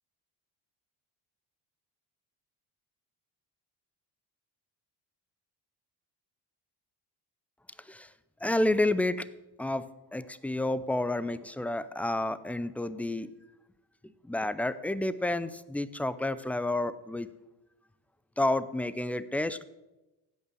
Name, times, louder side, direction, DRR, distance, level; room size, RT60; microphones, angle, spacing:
voice 1, 8.4-9.3 9.6-9.9 10.1-13.3 14.3-17.3 18.4-19.6, left 1 dB, 5° left, 15 dB, 0.4 m, -30 dB
15.5 x 5.5 x 6.3 m, 1.0 s
cardioid pair, 95°, 43 cm